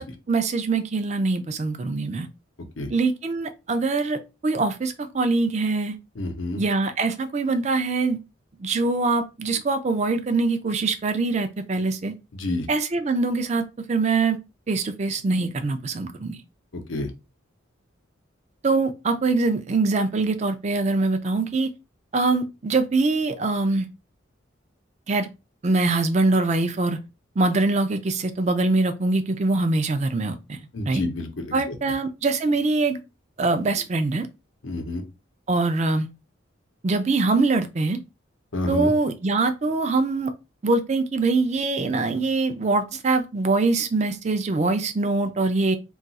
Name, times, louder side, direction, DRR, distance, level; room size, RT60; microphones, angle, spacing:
voice 1, 0.0-2.3 2.9-6.0 6.6-8.2 8.6-12.1 12.7-14.4 14.7-16.4 18.6-21.7 22.1-23.9 25.1-25.3 25.6-27.0 27.4-31.0 31.5-33.0 33.4-34.3 35.5-36.1 36.8-38.0 38.7-40.3 40.6-45.8, right 3 dB, 35° right, 0.4 m, -23 dB
voice 2, 6.1-6.6 12.3-12.7 16.7-17.1 30.7-31.8 34.6-35.0 38.5-38.9, left 2 dB, 80° left, 0.7 m, -29 dB
2.4 x 2.3 x 4.0 m
head